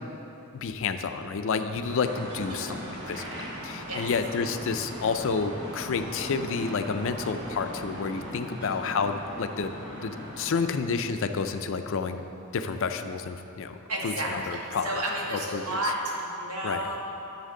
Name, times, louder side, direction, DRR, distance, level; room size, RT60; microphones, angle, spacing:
voice 1, 0.5-3.3 3.6-12.2 12.5-13.8 14.0-15.0 15.3-15.8 16.6-16.8, left 5 dB, 60° left, 8 dB, 0.4 m, -30 dB
sound 1, 1.8-10.6, equal, 55° right, 1.7 m, -39 dB
voice 2, 2.5-2.8 3.9-4.1 8.6-9.0 13.9-17.0, right 1 dB, 75° right, -2 dB, 1.5 m, -32 dB
11.5 x 6.5 x 3.8 m, 2.9 s
head